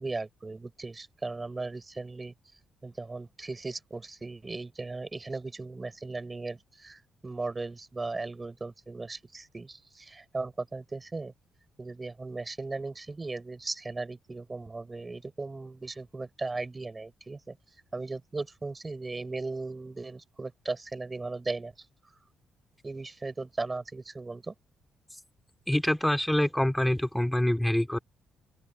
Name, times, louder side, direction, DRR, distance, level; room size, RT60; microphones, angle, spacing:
voice 1, 0.0-2.3 2.8-11.3 11.8-17.6 17.9-21.7 22.8-24.5, right 3 dB, 25° right, 4.9 m, -37 dB
voice 2, 25.7-28.0, left 1 dB, 5° left, 3.4 m, -25 dB
open air
cardioid pair, 90°, 0 cm